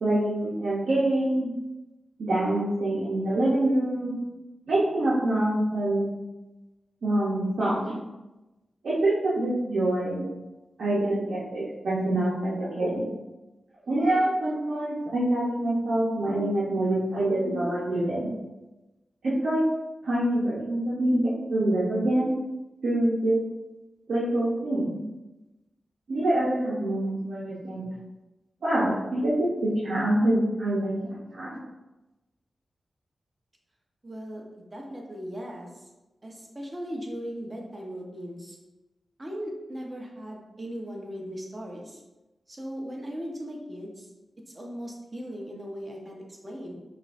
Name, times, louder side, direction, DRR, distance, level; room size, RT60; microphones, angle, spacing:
voice 1, 0.0-1.5 2.2-4.2 4.7-6.1 7.0-8.0 8.8-10.3 10.8-13.0 13.9-18.3 19.2-19.6 20.0-22.3 22.8-23.4 24.1-25.0 26.1-27.8 28.6-31.6, right 1 dB, 80° right, -9 dB, 0.9 m, -25 dB
voice 2, 34.0-35.7 36.2-38.6 39.2-42.0 42.5-44.1 44.5-46.8, equal, 30° right, -1 dB, 1.0 m, -38 dB
5.9 x 2.6 x 2.5 m, 1.0 s
cardioid pair, 55°, 0 cm